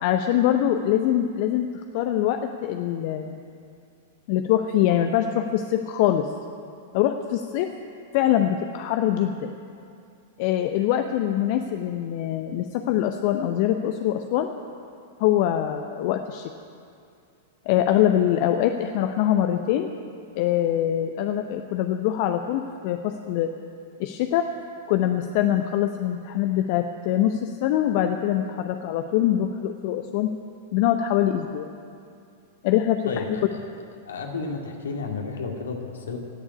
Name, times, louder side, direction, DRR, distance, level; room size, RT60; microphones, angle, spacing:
voice 1, 0.0-1.7 1.9-3.4 4.3-6.3 6.9-7.7 8.1-9.5 10.4-14.5 15.2-16.5 17.7-19.9 20.3-23.5 24.0-24.5 24.9-30.3 30.7-31.7 32.6-33.2, left 11 dB, 50° left, 7 dB, 0.7 m, -23 dB
voice 2, 33.1-33.6 34.1-36.2, left 4 dB, 70° left, 1 dB, 2.2 m, -32 dB
17.0 x 7.3 x 9.7 m, 2.4 s
figure-of-eight pair, 100°, 0 cm